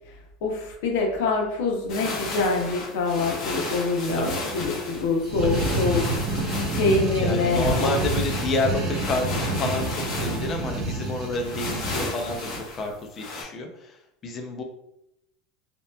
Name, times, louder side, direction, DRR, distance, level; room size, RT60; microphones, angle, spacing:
voice 1, 0.4-6.1 6.3-8.0, left 3 dB, 75° left, 1 dB, 0.7 m, -25 dB
sound 1, 1.9-13.4, left 2 dB, 45° left, 0.9 m, -34 dB
voice 2, 4.2-4.7 5.4-5.9 7.2-14.6, left 2 dB, 30° left, 4 dB, 0.4 m, -30 dB
sound 2, 5.2-12.6, right 2 dB, 45° right, 0.7 m, -28 dB
2.7 x 2.2 x 2.2 m, 0.82 s
supercardioid pair, 155°, 0 cm